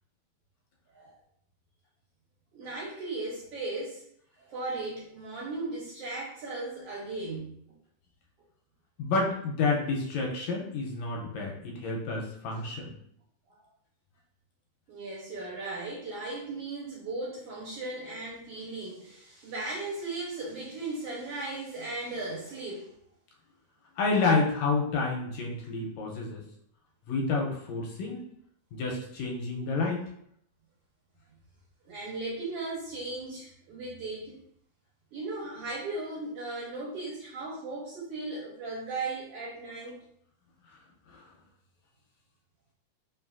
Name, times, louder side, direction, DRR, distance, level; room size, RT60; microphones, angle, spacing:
voice 1, 2.5-4.0 4.4-7.6 12.5-12.6 14.9-22.9 31.8-34.4 35.1-40.0, right 2 dB, 70° right, -4 dB, 1.5 m, -37 dB
voice 2, 9.0-12.9 24.0-26.4 27.1-28.2 28.7-30.0 41.1-41.2, left 3 dB, 80° left, -1 dB, 1.8 m, -29 dB
4.4 x 3.1 x 2.4 m, 0.70 s
omnidirectional pair, 3.4 m